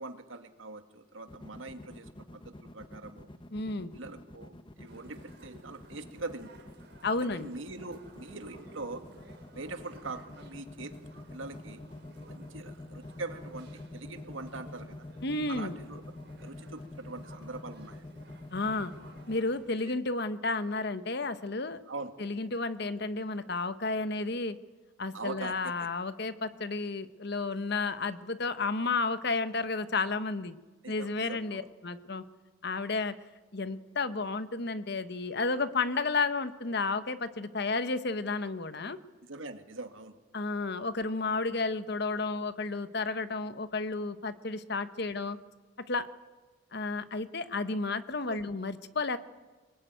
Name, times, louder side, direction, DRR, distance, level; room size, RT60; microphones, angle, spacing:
voice 1, 0.0-3.3 3.9-6.5 7.2-9.0 9.5-11.8 12.3-15.0 15.5-16.0 16.4-18.0 19.8-19.9 21.9-22.1 25.1-25.9 30.8-31.7 39.2-40.2 48.2-48.4, right 3 dB, 75° right, 7 dB, 2.1 m, -42 dB
sound 1, 1.3-19.4, left 1 dB, 25° left, 1.0 m, -46 dB
voice 2, 3.5-3.9 7.0-7.5 15.2-15.8 18.5-18.9 19.3-21.8 22.2-24.6 25.0-30.6 30.9-32.2 32.6-33.1 33.5-39.0 40.3-45.4 45.9-46.1 46.7-49.2, left 3 dB, 55° left, 12 dB, 1.1 m, -32 dB
sound 2, 4.9-19.8, right 2 dB, 55° right, 3.5 m, -56 dB
24.0 x 20.5 x 9.3 m, 1.3 s
head